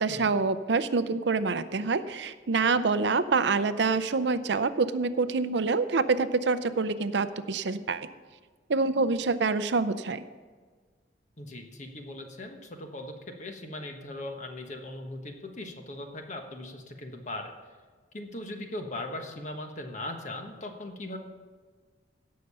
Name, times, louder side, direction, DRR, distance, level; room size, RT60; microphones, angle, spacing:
voice 1, 0.0-8.1 8.7-10.2, right 4 dB, 70° right, 13 dB, 0.5 m, -26 dB
voice 2, 11.4-17.5 18.1-21.2, left 1 dB, 40° left, 4 dB, 1.3 m, -39 dB
17.0 x 6.7 x 5.5 m, 1.5 s
head